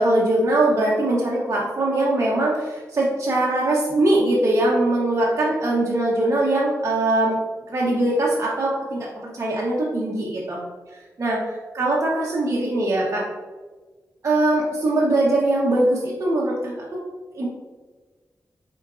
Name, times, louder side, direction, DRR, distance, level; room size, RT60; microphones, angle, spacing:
voice 1, 0.0-7.4 7.7-10.6 11.2-11.4 11.7-13.3 14.2-17.0 17.3-17.5, right 1 dB, 45° right, -5 dB, 0.9 m, -21 dB
4.5 x 4.3 x 2.5 m, 1.3 s
cardioid pair, 80°, 6 cm